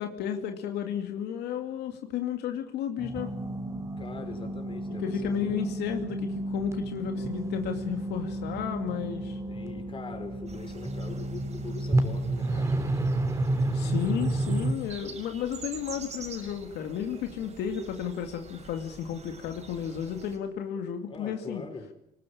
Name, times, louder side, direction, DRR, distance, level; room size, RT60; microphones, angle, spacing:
voice 1, 0.0-3.3 4.9-9.4 13.7-21.6, left 9 dB, 80° left, 5 dB, 2.4 m, -33 dB
sound 1, 3.0-14.7, right 2 dB, 15° right, 3.4 m, -31 dB
voice 2, 4.0-5.5 9.5-12.7 21.1-21.9, left 4 dB, 30° left, 7 dB, 5.0 m, -42 dB
sound 2, 10.5-20.4, right 4 dB, 40° right, 5.2 m, -46 dB
24.5 x 20.5 x 8.7 m, 0.80 s
cardioid pair, 110°, 17 cm